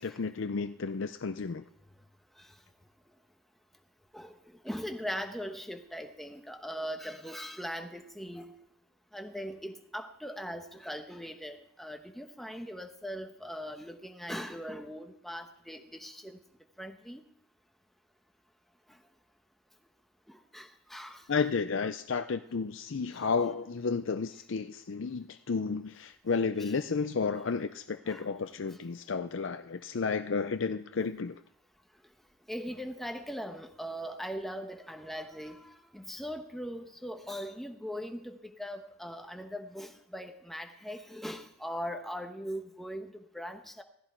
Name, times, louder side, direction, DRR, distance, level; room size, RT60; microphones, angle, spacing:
voice 1, 0.0-1.6 21.3-31.4, left 5 dB, 70° left, 10 dB, 0.5 m, -32 dB
voice 2, 4.6-8.5 9.1-16.4 16.8-17.2 20.3-21.2 28.1-28.2 31.0-31.1 32.5-43.8, equal, ahead, 4 dB, 1.1 m, -40 dB
17.0 x 15.0 x 4.5 m, 0.72 s
head